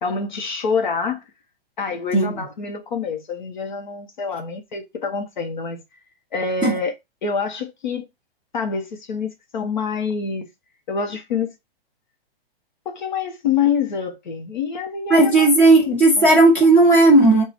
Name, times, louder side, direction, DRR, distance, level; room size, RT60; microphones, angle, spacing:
voice 1, 0.0-1.2 1.8-5.8 6.3-6.9 7.2-8.1 8.5-10.5 10.9-11.5 12.8-15.5 15.8-16.3, left 6 dB, 50° left, 0.9 m, -26 dB
voice 2, 15.1-17.4, right 2 dB, 5° left, 1.1 m, -14 dB
4.4 x 2.3 x 4.1 m
hypercardioid pair, 175°, 31 cm